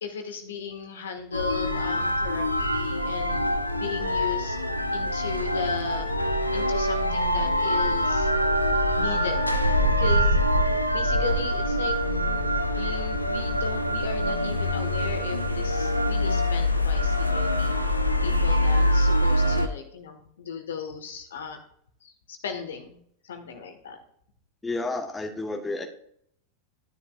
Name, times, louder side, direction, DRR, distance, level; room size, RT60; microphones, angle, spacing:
voice 1, 0.0-3.4 3.8-4.6 4.9-6.1 6.5-8.3 9.0-9.5 10.0-10.4 10.9-12.0 12.7-21.6 22.0-23.0 23.2-24.0, left 6 dB, 65° left, 6 dB, 1.5 m, -36 dB
sound 1, 1.3-19.7, equal, 85° left, 0.7 m, -24 dB
voice 2, 24.6-25.8, left 2 dB, 10° left, 2 dB, 1.3 m, -31 dB
13.0 x 9.9 x 2.5 m, 0.67 s
figure-of-eight pair, 90°, 0 cm